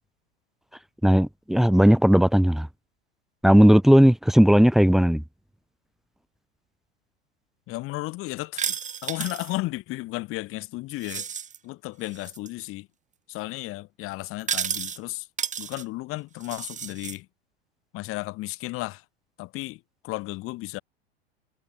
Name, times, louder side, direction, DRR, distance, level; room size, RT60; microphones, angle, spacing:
voice 1, 1.0-2.7 3.4-5.2, equal, ahead, 0.8 m, -17 dB
voice 2, 7.7-8.6 9.0-11.3 11.6-12.9 13.3-15.3 15.6-17.3 17.9-19.0 19.4-20.8, left 20 dB, 40° left, 2.4 m, -34 dB
sound 1, 8.6-9.6 11.0-11.6 12.1-12.5 14.4-15.0 15.4-15.8 16.4-17.2, right 7 dB, 20° right, 5.4 m, -32 dB
figure-of-eight pair, 95°, 33 cm